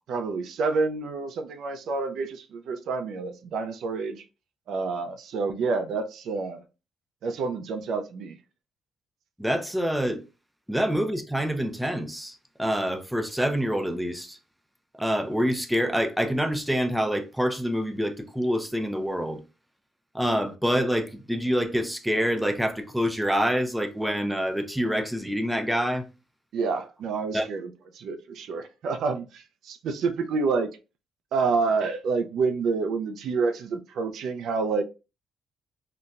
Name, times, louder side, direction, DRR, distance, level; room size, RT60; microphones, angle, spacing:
voice 1, 0.1-4.2 4.7-6.6 7.2-8.4 26.5-30.7 31.3-34.8, right 4 dB, 75° right, 0.4 m, -28 dB
voice 2, 9.4-10.2 10.7-14.4 15.0-19.4 20.1-26.1 27.3-27.5, equal, 5° right, 0.5 m, -26 dB
3.8 x 2.1 x 2.4 m
cardioid pair, 90°, 0 cm